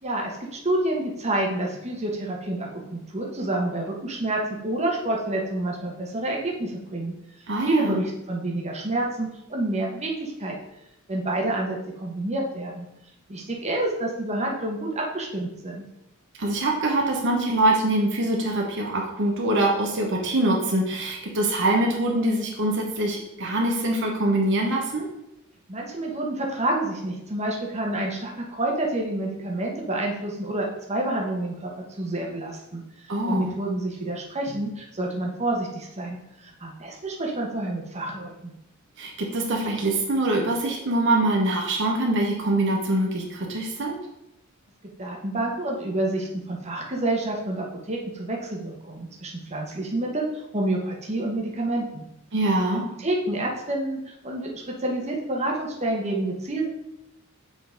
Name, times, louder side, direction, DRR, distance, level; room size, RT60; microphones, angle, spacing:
voice 1, 0.0-7.1 7.6-10.6 11.1-12.9 13.3-15.8 25.7-38.5 45.0-52.0 53.0-56.7, right 1 dB, 30° right, -1 dB, 1.1 m, -28 dB
voice 2, 7.5-8.0 16.4-25.1 33.1-33.5 39.0-44.0 52.3-52.8, right 1 dB, 60° right, 0 dB, 1.0 m, -24 dB
7.2 x 3.9 x 3.8 m, 0.84 s
head